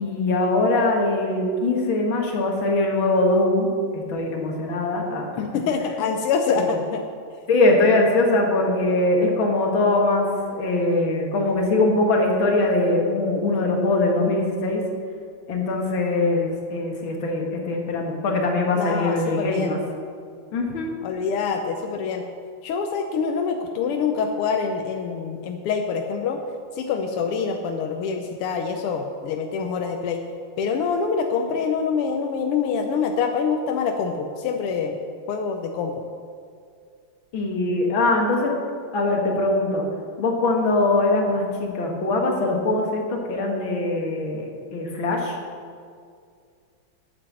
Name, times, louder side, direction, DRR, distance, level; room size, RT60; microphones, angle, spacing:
voice 1, 0.0-5.6 6.0-6.1 6.5-6.7 7.5-14.8 15.5-19.8 20.5-20.9 37.3-38.5 38.9-39.8 40.2-45.4, left 2 dB, 65° left, 1 dB, 2.3 m, -22 dB
voice 2, 5.4-7.0 18.8-19.8 21.0-22.2 22.6-26.4 26.7-30.2 30.6-35.0 35.3-35.9, left 5 dB, 90° left, 4 dB, 1.7 m, -25 dB
9.1 x 8.7 x 7.6 m, 2.2 s
omnidirectional pair, 2.4 m